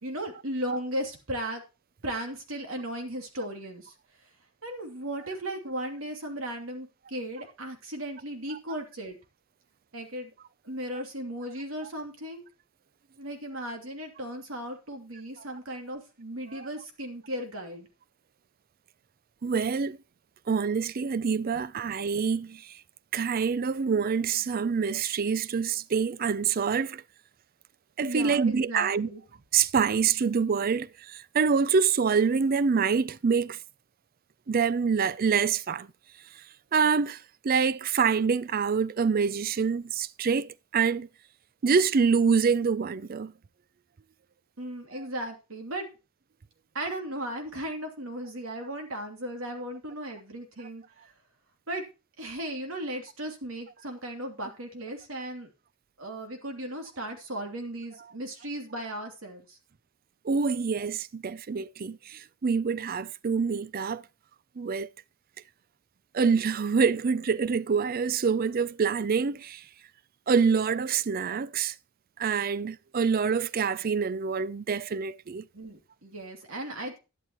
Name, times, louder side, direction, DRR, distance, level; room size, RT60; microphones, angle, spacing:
voice 1, 0.0-1.6 2.0-3.9 4.6-9.2 9.9-10.3 10.6-12.5 13.2-17.9 28.0-29.2 44.6-45.9 46.7-50.8 51.7-51.8 52.2-55.5 56.0-59.6 75.5-77.0, right 1 dB, 70° right, 2.9 m, -36 dB
voice 2, 19.4-20.0 20.5-22.7 23.1-27.0 28.0-29.1 29.5-33.6 34.5-35.9 36.7-41.1 41.6-43.3 60.2-64.0 64.6-64.9 66.1-69.6 70.3-71.7 72.2-75.5, right 5 dB, 45° right, 0.4 m, -26 dB
12.0 x 11.0 x 3.0 m
head